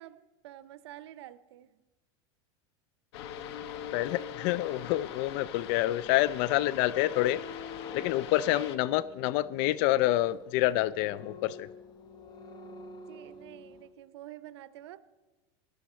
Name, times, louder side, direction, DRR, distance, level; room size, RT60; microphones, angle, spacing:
voice 1, 0.0-1.8 8.4-8.8 13.1-15.0, right 13 dB, 85° right, 0.7 m, -48 dB
sound 1, 3.1-8.8, left 9 dB, 75° left, 1.0 m, -41 dB
voice 2, 3.9-7.6 7.9-11.7, left 15 dB, 60° left, 0.4 m, -28 dB
sound 2, 6.9-13.9, left 3 dB, 30° left, 1.2 m, -48 dB
16.0 x 11.5 x 4.4 m
supercardioid pair, 125°, 14 cm